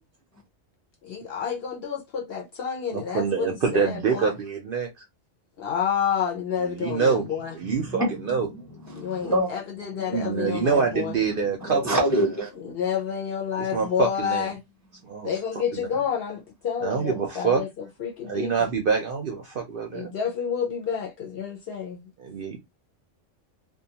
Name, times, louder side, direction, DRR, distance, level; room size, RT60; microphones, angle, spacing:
voice 1, 1.0-4.3 5.6-7.6 8.9-11.2 12.6-14.6 15.2-18.5 19.9-22.1, left 7 dB, 60° left, 0.7 m, -29 dB
voice 2, 2.9-5.0 6.6-7.3 7.5-8.5 10.1-12.0 13.7-14.5 15.0-15.3 15.7-15.9 16.8-17.6 18.2-20.1 22.2-22.6, right 6 dB, 60° right, 0.6 m, -26 dB
voice 3, 7.7-9.6 9.9-10.6 11.3-12.5, right 1 dB, 20° left, 0.4 m, -28 dB
2.3 x 2.2 x 2.7 m
omnidirectional pair, 1.3 m